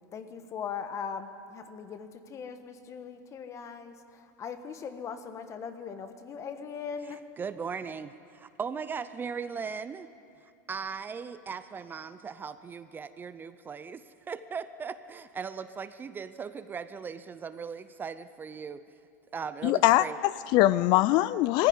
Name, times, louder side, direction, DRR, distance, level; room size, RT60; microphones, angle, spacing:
voice 1, 0.1-7.2, left 6 dB, 30° left, 9 dB, 1.4 m, -40 dB
voice 2, 7.4-10.1 10.7-18.9 19.3-20.2, right 6 dB, 20° right, 13 dB, 0.6 m, -38 dB
voice 3, 19.6-21.7, left 15 dB, 45° left, 17 dB, 0.5 m, -22 dB
19.5 x 15.0 x 9.6 m, 2.5 s
supercardioid pair, 125°, 10 cm